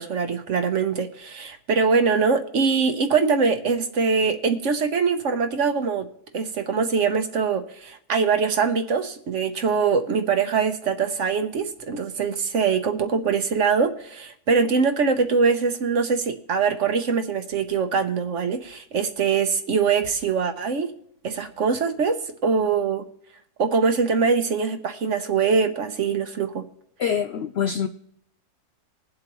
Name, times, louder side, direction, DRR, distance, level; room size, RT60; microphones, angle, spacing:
voice 1, 0.0-6.1 6.3-20.9 21.2-23.0 23.6-26.6, right 5 dB, 55° right, 1.1 m, -23 dB
voice 2, 27.0-27.9, left 7 dB, 90° left, 0.5 m, -25 dB
21.5 x 7.7 x 3.0 m
omnidirectional pair, 1.7 m